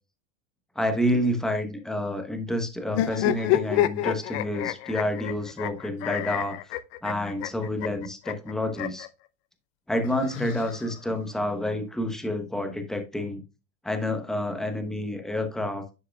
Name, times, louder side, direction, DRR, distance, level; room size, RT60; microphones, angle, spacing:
voice 1, 0.7-6.6 7.0-9.1 9.9-13.4 13.8-15.8, left 1 dB, ahead, 6 dB, 1.0 m, -29 dB
sound 1, 2.9-9.1 10.0-11.2, left 13 dB, 55° left, 0.6 m, -29 dB
10.5 x 4.7 x 2.3 m, 0.29 s
hypercardioid pair, 115°, 39 cm